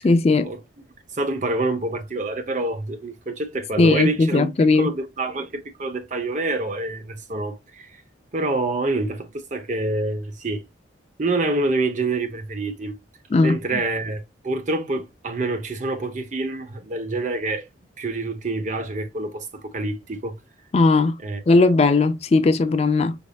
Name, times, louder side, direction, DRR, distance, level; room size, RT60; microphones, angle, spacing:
voice 1, 0.0-0.5 3.8-4.9 13.3-13.8 20.7-21.2 21.5-23.2, left 3 dB, 35° left, 0.4 m, -18 dB
voice 2, 1.1-7.9 8.3-10.6 11.2-12.9 13.4-17.6 18.0-20.3 21.2-21.4, right 2 dB, 40° right, 0.8 m, -27 dB
5.2 x 3.5 x 2.3 m
head